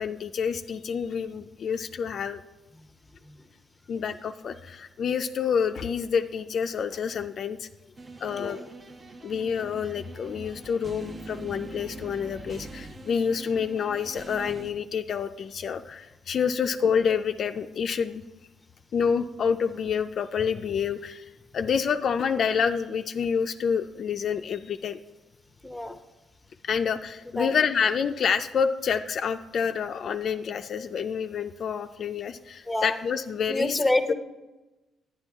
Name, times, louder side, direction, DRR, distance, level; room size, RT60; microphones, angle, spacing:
voice 1, 0.0-2.4 3.9-7.7 8.2-8.6 9.2-18.2 18.9-25.0 26.6-33.8 34.1-34.2, left 6 dB, 55° left, 8 dB, 0.4 m, -28 dB
sound 1, 8.0-14.7, right 3 dB, 35° right, 0.7 m, -43 dB
voice 2, 25.6-26.0 27.4-27.5 32.7-33.0 33.5-34.1, left 2 dB, 10° left, 8 dB, 0.8 m, -27 dB
9.8 x 9.8 x 3.5 m, 1.1 s
cardioid pair, 90°, 0 cm